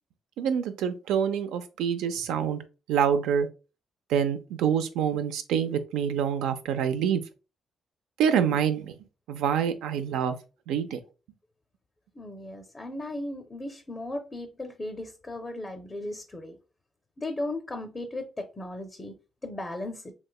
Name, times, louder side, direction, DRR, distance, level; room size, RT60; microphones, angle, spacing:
voice 1, 0.4-2.6 2.9-3.5 4.1-7.2 8.2-9.0 9.3-10.4 10.7-11.0, right 8 dB, 90° right, 0.4 m, -26 dB
voice 2, 12.2-16.6 17.2-19.1 19.4-20.1, left 1 dB, 25° left, 0.5 m, -36 dB
3.1 x 2.8 x 2.3 m
cardioid pair, 90°, 0 cm